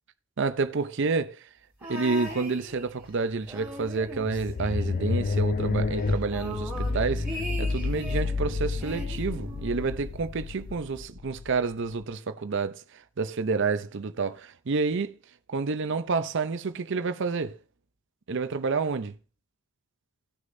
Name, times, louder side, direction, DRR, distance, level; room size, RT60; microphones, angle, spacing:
voice 1, 0.4-1.4 1.9-7.3 7.6-12.8 13.2-15.2 15.5-17.5 18.3-19.1, right 4 dB, 55° right, 0.5 m, -29 dB
sound 1, 1.8-3.1 3.4-5.3 5.6-5.7 6.0-8.4 8.8-10.1 10.9-11.0, left 1 dB, 10° right, 2.9 m, -39 dB
sound 2, 3.8-12.0, left 3 dB, 40° left, 0.3 m, -30 dB
17.5 x 6.4 x 2.6 m
head